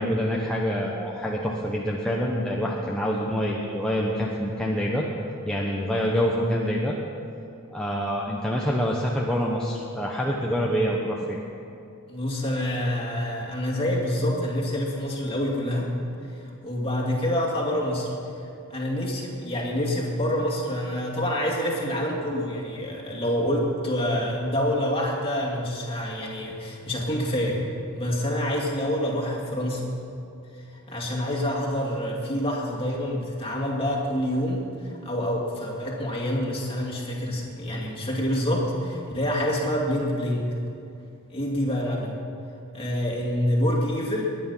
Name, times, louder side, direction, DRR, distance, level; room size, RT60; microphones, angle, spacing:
voice 1, 0.0-5.1 5.4-7.0 7.7-11.4, equal, 5° left, -4 dB, 1.0 m, -26 dB
voice 2, 12.1-15.9 16.4-18.1 18.7-27.6 27.9-29.9 30.7-40.4 41.3-42.1 42.7-44.3, equal, 25° left, -2 dB, 2.5 m, -27 dB
21.5 x 9.8 x 5.6 m, 2.6 s
head